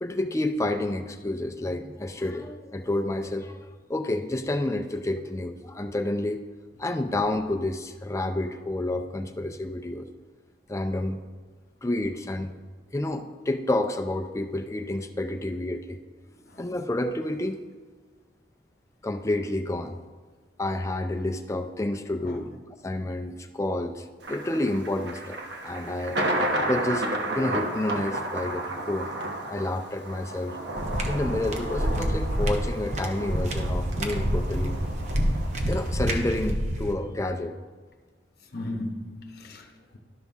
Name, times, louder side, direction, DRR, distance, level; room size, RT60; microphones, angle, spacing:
voice 1, 0.0-6.4 6.8-10.1 10.7-11.2 11.8-12.5 12.9-16.0 16.6-17.6 19.0-20.0 20.6-22.5 22.8-26.2 26.7-27.1 27.3-29.1 29.5-30.6 31.1-34.8 35.7-37.5, left 1 dB, 15° left, 0.4 m, -29 dB
Thunder, 24.2-36.5, right 1 dB, 65° right, 1.1 m, -33 dB
sound 1, 30.8-36.9, equal, 40° right, 0.8 m, -27 dB
voice 2, 38.5-40.0, left 1 dB, 55° left, 0.9 m, -37 dB
12.0 x 5.7 x 3.5 m
head